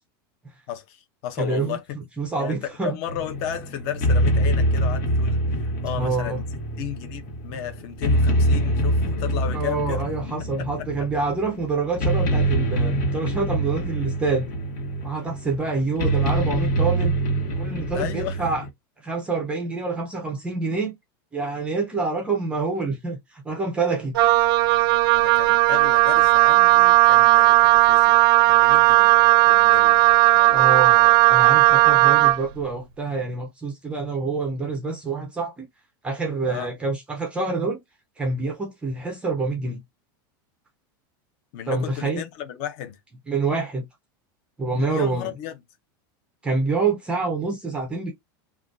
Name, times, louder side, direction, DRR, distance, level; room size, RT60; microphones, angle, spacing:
voice 1, 0.7-1.8 2.4-6.4 6.8-10.0 10.6-10.7 17.9-18.4 25.2-28.2 28.5-29.1 29.5-30.0 30.3-30.7 36.5-36.7 41.5-43.0 44.8-45.5, left 10 dB, 40° left, 0.6 m, -34 dB
voice 2, 1.4-1.8 2.2-3.0 5.9-6.4 9.5-14.5 15.0-17.2 17.6-18.6 19.0-20.9 21.3-24.2 30.5-35.7 36.0-37.8 38.2-39.8 41.7-42.2 43.3-43.9 44.6-45.3 46.4-48.1, right 3 dB, 10° right, 0.4 m, -27 dB
sound 1, 3.1-18.7, right 1 dB, 65° left, 1.3 m, -25 dB
Wind instrument woodwind instrument, 24.1-32.4, right 17 dB, 75° right, 0.4 m, -16 dB
2.4 x 2.2 x 3.7 m
supercardioid pair, 170°, 12 cm